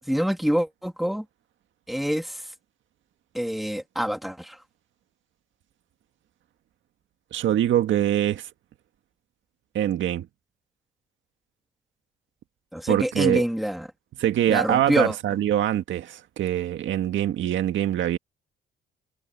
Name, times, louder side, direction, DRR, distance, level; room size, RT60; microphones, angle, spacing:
voice 1, 0.1-1.3 1.9-2.4 3.3-4.6 12.7-13.9 14.5-15.1, equal, ahead, 1.9 m, -26 dB
voice 2, 7.3-8.5 9.7-10.3 12.9-13.4 14.2-18.2, right 11 dB, 75° right, 1.8 m, -24 dB
cardioid pair, 90°, 20 cm